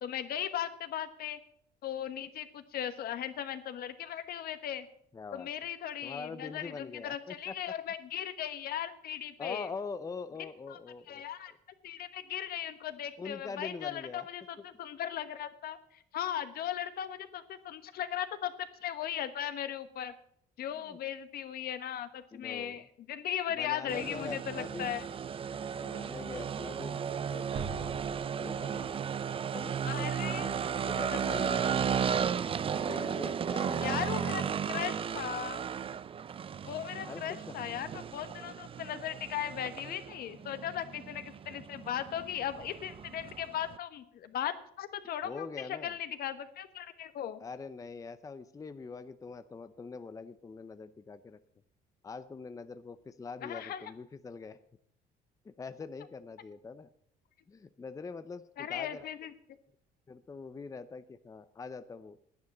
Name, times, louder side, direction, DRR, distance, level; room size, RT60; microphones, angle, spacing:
voice 1, 0.0-1.4 1.8-4.9 5.3-9.7 10.4-10.8 11.1-11.5 11.8-18.5 18.8-20.1 20.6-25.1 29.8-30.6 31.1-31.2 33.8-34.4 34.7-35.6 36.6-47.4 53.4-53.8 58.6-59.3, left 10 dB, 65° left, 11 dB, 1.2 m, -37 dB
voice 2, 5.1-5.5 6.0-7.5 9.4-11.6 13.2-14.3 20.9-21.0 22.3-22.8 23.5-25.0 25.8-29.0 29.5-30.6 30.8-32.2 32.7-34.5 37.0-37.5 45.2-46.0 47.4-51.4 52.0-54.6 55.4-56.9 57.5-59.1 60.1-62.2, left 4 dB, 20° left, 12 dB, 0.6 m, -44 dB
sound 1, 23.9-43.8, right 7 dB, 35° right, 0.5 m, -35 dB
sound 2, 27.6-29.6, right 5 dB, 70° right, 1.8 m, -43 dB
10.5 x 9.6 x 7.3 m, 0.68 s
cardioid pair, 110°, 17 cm